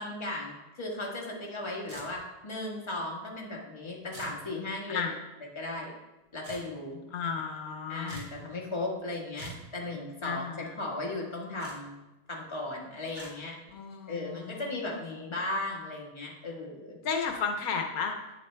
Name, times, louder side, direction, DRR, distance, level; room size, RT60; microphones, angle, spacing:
voice 1, 0.0-5.1 5.5-5.9 6.3-7.0 7.9-12.0 12.3-13.5 14.1-17.0, left 2 dB, 20° left, -1 dB, 1.4 m, -36 dB
sound 1, 1.9-2.4 4.1-4.4 6.4-6.7 8.1-8.4 9.4-9.7 11.6-11.8 13.1-13.3, right 2 dB, 50° right, 2.1 m, -44 dB
voice 2, 7.1-8.2 10.2-10.7 13.7-14.7 17.0-18.1, left 6 dB, 75° left, 4 dB, 1.2 m, -33 dB
8.8 x 7.3 x 3.3 m, 1.0 s
omnidirectional pair, 1.5 m